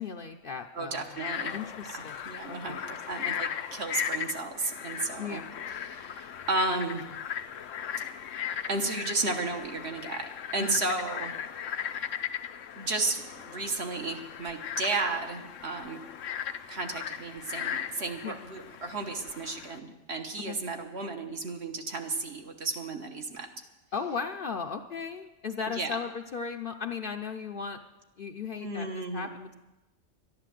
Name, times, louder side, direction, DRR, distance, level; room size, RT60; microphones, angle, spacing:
voice 1, 0.0-1.1 1.5-2.2 2.5-2.9 5.2-5.5 10.6-10.8 18.2-18.4 20.5-20.6 23.9-27.8 28.2-29.5, left 5 dB, 55° left, 5 dB, 0.7 m, -36 dB
voice 2, 0.7-1.5 2.2-5.4 5.8-7.0 8.7-11.6 12.8-16.0 16.7-23.5 25.7-26.0 28.6-29.3, right 3 dB, 60° right, 4 dB, 1.5 m, -33 dB
Frog, 1.0-19.8, left 9 dB, 85° left, 1.1 m, -38 dB
12.5 x 10.5 x 7.6 m, 1.1 s
omnidirectional pair, 1.3 m